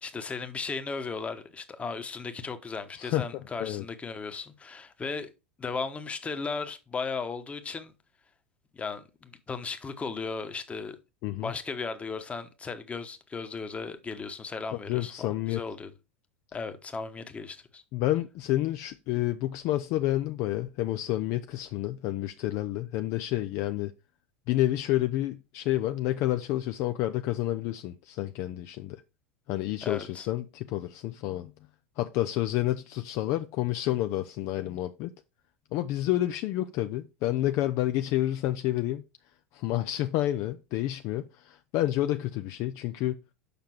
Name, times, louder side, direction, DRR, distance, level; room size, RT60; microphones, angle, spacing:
voice 1, 0.0-5.3 5.6-7.9 8.7-11.0 11.4-15.9 16.5-17.8 29.8-30.3, left 4 dB, 20° left, 1.1 m, -36 dB
voice 2, 3.0-3.9 11.2-11.5 14.9-15.6 17.9-23.9 24.5-29.0 29.5-31.5 32.0-35.1 35.7-39.0 39.5-43.2, left 14 dB, 45° left, 0.5 m, -29 dB
6.8 x 5.8 x 4.5 m
figure-of-eight pair, 80°, 7 cm